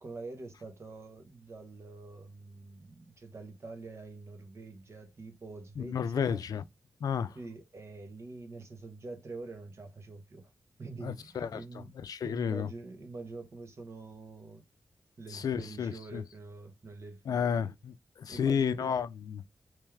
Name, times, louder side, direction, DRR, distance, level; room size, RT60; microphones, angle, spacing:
voice 1, 0.0-6.4 7.3-10.5 10.8-11.9 12.2-14.6 15.2-17.7 18.3-18.9, right 3 dB, 45° right, 1.1 m, -45 dB
voice 2, 5.8-6.6 7.0-7.4 11.0-11.6 12.0-12.7 15.3-16.2 17.3-19.5, left 7 dB, 80° left, 0.4 m, -32 dB
3.3 x 3.1 x 3.4 m
wide cardioid pair, 140°, 6 cm